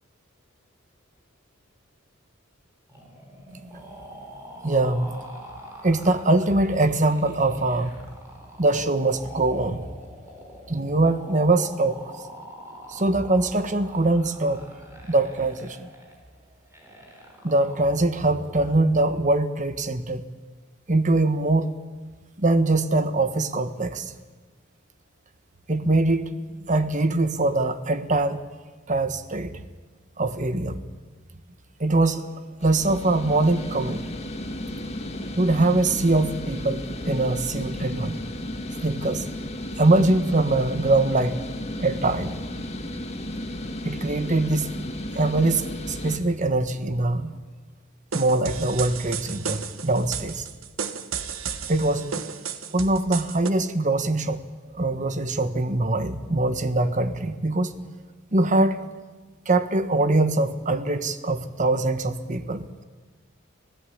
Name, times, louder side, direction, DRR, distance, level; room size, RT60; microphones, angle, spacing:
sound 1, 2.9-18.9, equal, 15° right, 4.7 m, -45 dB
voice 1, 4.6-5.1 5.8-7.9 8.6-9.8 10.7-12.0 12.9-14.6 15.1-15.9 17.4-20.2 20.9-21.7 22.4-24.1 25.7-26.3 26.7-28.4 28.9-29.6 30.2-30.8 31.8-32.2 32.6-34.0 35.4-38.2 38.8-39.3 39.8-41.4 41.8-42.4 43.8-44.7 45.1-47.3 48.1-50.5 51.7-52.1 52.7-54.4 54.7-57.7 58.3-58.9 59.5-62.8, right 2 dB, 35° right, 11 dB, 1.3 m, -23 dB
sound 2, 32.6-46.2, left 1 dB, 30° left, 2.0 m, -34 dB
sound 3, 48.1-53.5, right 6 dB, 80° right, 1.4 m, -33 dB
25.5 x 16.5 x 8.7 m, 1.3 s
head